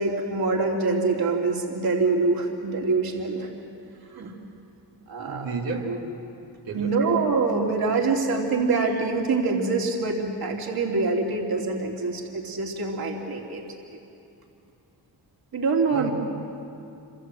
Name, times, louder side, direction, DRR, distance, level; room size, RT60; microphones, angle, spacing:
voice 1, 0.0-3.5 4.1-4.3 5.1-5.5 6.7-13.7 13.9-14.0 15.5-16.1, right 3 dB, 55° right, 0 dB, 3.4 m, -25 dB
voice 2, 5.3-6.3 6.6-7.0 15.9-16.1, right 3 dB, 70° right, -3 dB, 3.3 m, -32 dB
27.0 x 25.5 x 7.8 m, 2.7 s
cardioid pair, 85°, 44 cm